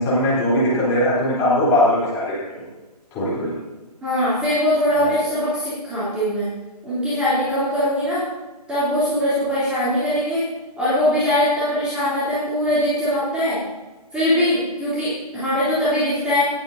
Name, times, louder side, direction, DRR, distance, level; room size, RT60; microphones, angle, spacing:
voice 1, 0.0-2.4 3.1-3.5 5.0-5.1, left 1 dB, 15° left, -8 dB, 3.6 m, -20 dB
voice 2, 4.0-6.5 6.8-8.2 8.7-10.5 10.8-13.6 14.1-16.4, left 1 dB, 5° right, -13 dB, 3.2 m, -21 dB
19.0 x 9.1 x 2.8 m, 1.2 s
figure-of-eight pair, 145°, 21 cm